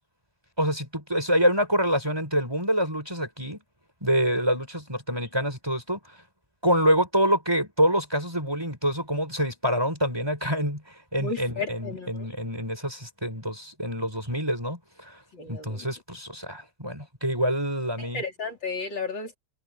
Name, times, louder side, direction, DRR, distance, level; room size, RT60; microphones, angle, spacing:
voice 1, 0.6-3.6 4.0-6.0 6.6-15.2 15.5-18.3, equal, 10° right, 5.2 m, -26 dB
voice 2, 11.2-12.3 15.3-15.8 18.1-19.4, left 4 dB, 60° left, 4.8 m, -33 dB
omnidirectional pair, 2.3 m